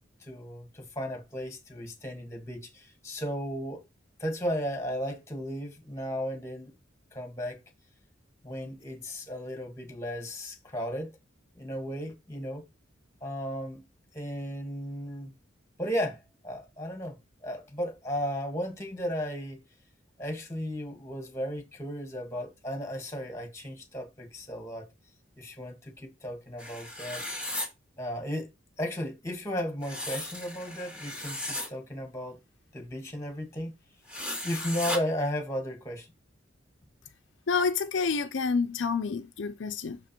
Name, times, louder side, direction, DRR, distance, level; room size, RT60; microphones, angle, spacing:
voice 1, 0.2-3.8 4.2-6.7 7.1-7.6 8.4-11.1 11.6-12.6 13.2-13.8 14.1-15.3 15.8-19.6 20.2-24.9 25.4-27.2 28.0-28.5 28.8-32.4 32.7-33.7 34.4-36.1, equal, 15° left, 1.9 m, -35 dB
sound 1, 26.6-27.7 29.8-31.7 34.1-35.0, left 1 dB, 5° right, 2.3 m, -36 dB
voice 2, 37.5-40.0, left 5 dB, 70° left, 0.5 m, -28 dB
6.3 x 5.1 x 4.4 m
head